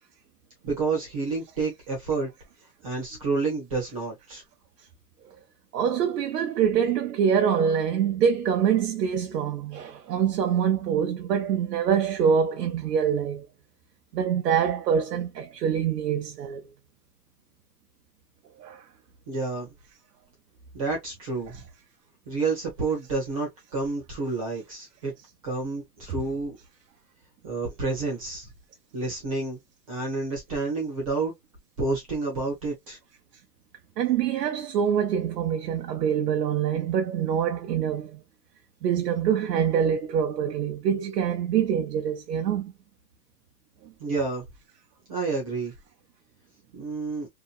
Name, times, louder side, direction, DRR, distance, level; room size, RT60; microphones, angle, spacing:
voice 1, 0.6-2.3 2.8-4.4 19.3-19.7 20.7-21.6 22.3-25.1 25.4-26.6 27.4-28.5 28.9-29.6 29.9-31.3 31.8-33.0 44.0-44.4 45.1-45.7 46.7-47.3, right 3 dB, 20° right, 0.7 m, -29 dB
voice 2, 5.7-13.5 14.1-16.7 18.6-18.8 34.0-38.2 38.8-42.7, right 8 dB, 80° right, 0.7 m, -25 dB
2.8 x 2.2 x 2.2 m
hypercardioid pair, 180°, 48 cm